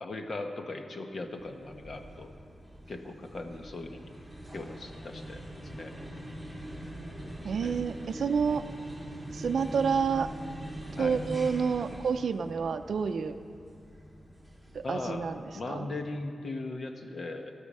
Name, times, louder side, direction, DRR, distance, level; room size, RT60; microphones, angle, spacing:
voice 1, 0.0-2.3 2.9-4.1 4.5-5.4 5.7-5.9 7.6-7.8 8.6-8.7 11.0-11.2 14.8-17.5, left 2 dB, 45° left, 5 dB, 1.1 m, -38 dB
sound 1, 1.2-15.7, right 1 dB, 10° left, 2.5 m, -43 dB
voice 2, 7.4-8.7 9.3-10.3 11.0-13.4 14.7-15.9, right 6 dB, 65° right, 9 dB, 0.5 m, -29 dB
13.5 x 13.0 x 5.5 m, 2.4 s
wide cardioid pair, 160°, 0 cm